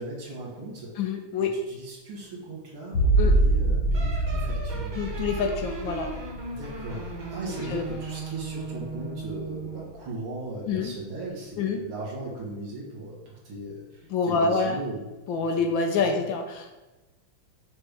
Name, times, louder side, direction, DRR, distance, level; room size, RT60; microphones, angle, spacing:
voice 1, 0.0-0.9 1.4-4.9 6.5-15.1 15.5-15.7 16.0-16.2, right 2 dB, 75° right, -5 dB, 2.7 m, -38 dB
voice 2, 1.0-1.5 3.2-3.3 4.9-6.1 7.5-7.8 10.7-10.9 11.6-11.8 14.1-14.8 15.3-16.8, left 4 dB, 70° left, 4 dB, 1.3 m, -27 dB
sound 1, 2.9-8.4 8.8-9.4, right 2 dB, 90° left, 3.5 m, -26 dB
sound 2, 3.9-10.0, right 3 dB, 40° right, 0.6 m, -37 dB
7.2 x 3.3 x 5.2 m, 1.1 s
omnidirectional pair, 2.3 m